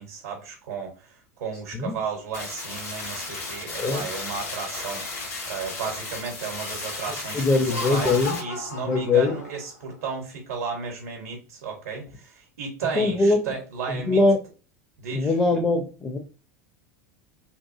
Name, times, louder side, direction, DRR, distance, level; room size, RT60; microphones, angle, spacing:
voice 1, 0.0-14.2 15.0-15.4, right 5 dB, 65° right, 0.7 m, -34 dB
sound 1, 2.3-8.4, left 3 dB, 70° left, 1.4 m, -34 dB
voice 2, 7.3-8.4 8.8-9.4 12.9-13.4 13.9-14.4 15.1-16.2, left 3 dB, 20° left, 0.5 m, -22 dB
Laughter, 7.5-9.9, left 4 dB, 85° left, 0.5 m, -36 dB
2.9 x 2.3 x 2.3 m
figure-of-eight pair, 75°, 8 cm